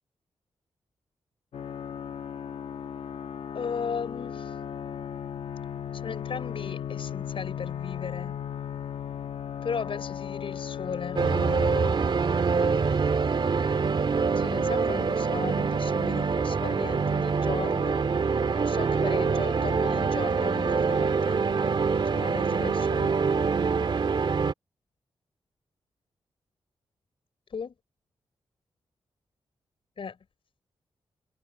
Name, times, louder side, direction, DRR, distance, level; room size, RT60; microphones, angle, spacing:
sound 1, 1.5-11.9, left 8 dB, 80° left, 1.8 m, -36 dB
voice 1, 3.5-4.5 6.0-8.4 9.6-11.2 14.4-18.0 18.6-21.4 22.1-23.2 27.5-27.7 30.0-30.2, left 6 dB, 65° left, 5.5 m, -36 dB
sound 2, 11.2-24.5, right 5 dB, 55° right, 2.1 m, -25 dB
cardioid pair, 70°, 10 cm